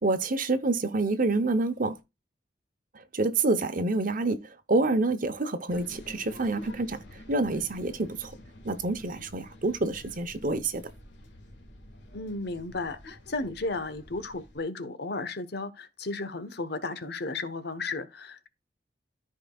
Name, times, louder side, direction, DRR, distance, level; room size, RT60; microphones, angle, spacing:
voice 1, 0.0-2.0 2.9-8.3 8.6-10.8, right 2 dB, 50° right, 0.9 m, -27 dB
sound 1, 5.7-14.6, left 1 dB, 90° left, 2.0 m, -48 dB
voice 2, 12.1-18.5, left 3 dB, 65° left, 1.1 m, -34 dB
14.0 x 4.8 x 2.4 m
head